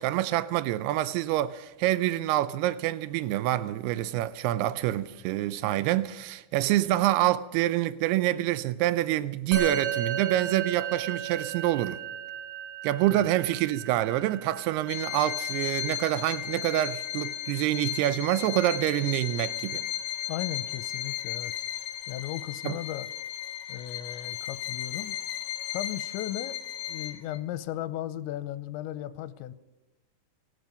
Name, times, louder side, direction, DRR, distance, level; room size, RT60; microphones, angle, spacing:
voice 1, 0.0-12.0 12.8-19.9 22.6-22.8, right 14 dB, 80° right, 2.4 m, -27 dB
Musical instrument, 9.5-19.1, right 7 dB, 50° right, 5.1 m, -36 dB
Bowed string instrument, 14.9-27.4, left 12 dB, 65° left, 2.4 m, -35 dB
voice 2, 20.3-21.5 22.1-23.1 23.7-25.2 25.7-26.6 26.9-29.5, left 13 dB, 85° left, 3.0 m, -36 dB
18.0 x 13.5 x 5.2 m
omnidirectional pair, 5.2 m